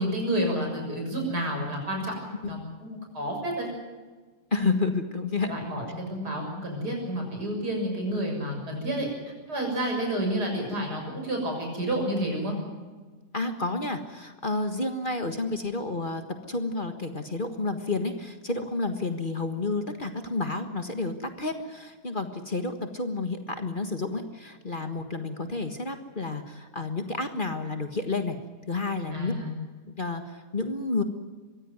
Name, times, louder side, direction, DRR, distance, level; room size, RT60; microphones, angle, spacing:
voice 1, 0.0-2.1 2.5-3.7 5.5-9.1 9.5-12.6 29.1-29.5, right 1 dB, 80° right, 2 dB, 7.3 m, -30 dB
voice 2, 4.5-5.5 8.9-9.0 13.3-28.4 28.7-29.4 30.0-31.0, left 3 dB, 30° left, 7 dB, 1.7 m, -30 dB
23.5 x 15.5 x 9.4 m, 1.4 s
omnidirectional pair, 1.7 m